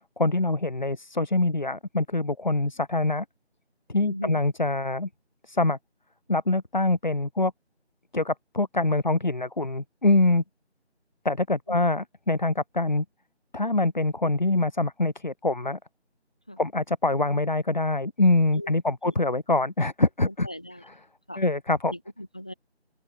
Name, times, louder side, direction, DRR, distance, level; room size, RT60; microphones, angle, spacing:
voice 1, 0.2-3.3 3.9-5.1 5.5-5.8 6.3-7.5 8.1-10.4 11.2-13.1 13.5-15.8 16.6-20.5 21.4-21.9, left 2 dB, 40° left, 2.0 m, -24 dB
voice 2, 4.0-4.4 11.7-11.8 16.5-16.6 18.5-18.7 19.0-19.1 20.3-20.8 21.3-21.4 21.9-22.5, equal, 5° left, 1.4 m, -38 dB
figure-of-eight pair, 165°, 34 cm